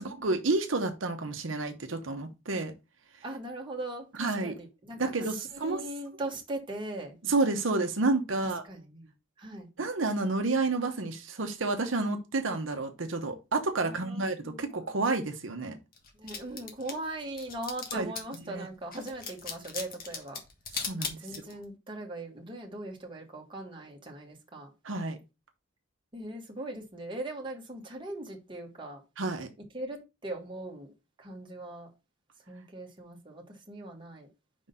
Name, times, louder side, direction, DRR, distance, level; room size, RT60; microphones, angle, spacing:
voice 1, 0.0-2.7 4.2-4.5 5.0-5.8 7.2-8.6 9.8-15.8 17.9-18.1 18.5-18.7 20.7-21.2 24.8-25.2 29.2-29.5, right 3 dB, 75° right, 0.9 m, -30 dB
voice 2, 3.2-7.2 8.4-9.1 9.4-9.7 13.9-14.8 16.2-20.4 21.2-24.7 26.1-29.0 29.7-30.9 31.2-31.9 32.5-34.3, right 1 dB, 25° right, 1.5 m, -40 dB
sound 1, 16.0-18.4 18.9-21.6, left 5 dB, 50° left, 1.4 m, -38 dB
5.3 x 3.7 x 5.4 m
head